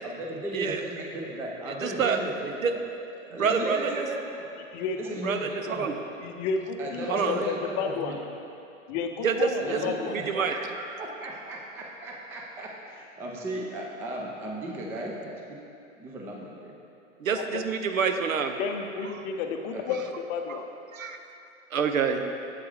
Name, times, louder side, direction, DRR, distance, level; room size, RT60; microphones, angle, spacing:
voice 1, 0.0-2.8 3.3-4.5 4.9-5.9 6.8-8.2 9.6-15.6 16.0-16.7 19.7-20.0, right 1 dB, 5° right, -1 dB, 0.3 m, -36 dB
voice 2, 1.8-2.2 2.6-2.7 3.4-4.0 5.2-5.9 7.1-7.4 9.2-9.8 10.1-10.5 17.2-18.6 20.5-20.6 20.9-21.2 21.7-22.3, right 6 dB, 80° right, 7 dB, 0.7 m, -27 dB
voice 3, 4.7-5.1 6.2-8.1 8.9-10.1 17.3-17.6 18.6-20.0 20.3-20.6, left 6 dB, 35° left, 4 dB, 0.6 m, -31 dB
7.7 x 7.5 x 3.3 m, 2.6 s
figure-of-eight pair, 100°, 40 cm